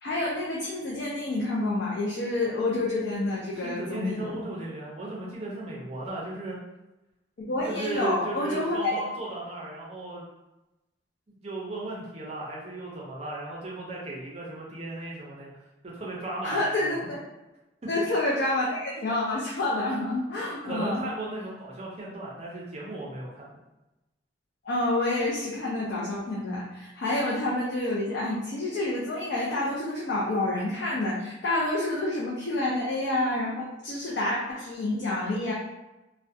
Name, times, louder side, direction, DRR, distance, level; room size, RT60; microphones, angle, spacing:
voice 1, 0.0-4.4 7.4-8.9 16.4-17.2 17.9-21.0 24.6-35.5, left 2 dB, 60° left, -4 dB, 0.4 m, -28 dB
voice 2, 3.5-6.6 7.7-10.2 11.3-15.5 15.8-16.9 17.8-17.9 20.6-23.6, right 2 dB, 35° right, -4 dB, 0.4 m, -36 dB
2.3 x 2.1 x 2.6 m, 1.0 s
head